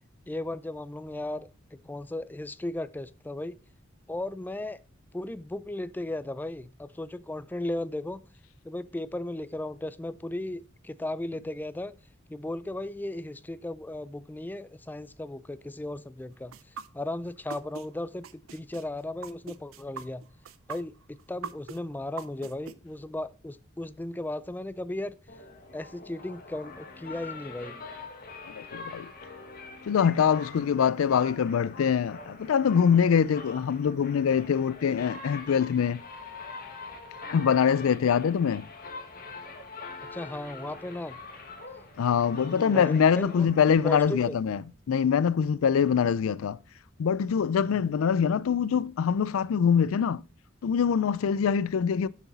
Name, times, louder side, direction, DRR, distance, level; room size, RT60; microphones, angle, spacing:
voice 1, 0.3-3.6 4.1-4.8 5.1-8.2 8.6-12.0 12.3-16.6 16.9-20.2 20.7-25.2 25.7-27.8 40.1-41.2 42.3-43.5 43.8-44.4 47.7-47.8, left 1 dB, 10° left, 0.3 m, -36 dB
sound 1, 16.5-17.9 18.2-22.7, right 6 dB, 85° right, 0.6 m, -40 dB
sound 2, 25.3-44.6, left 3 dB, 45° left, 1.6 m, -44 dB
voice 2, 28.5-29.1 29.9-36.0 37.3-38.6 42.0-44.6 44.9-46.6 47.0-50.2 50.6-52.1, left 7 dB, 90° left, 0.4 m, -24 dB
7.1 x 6.0 x 4.0 m
head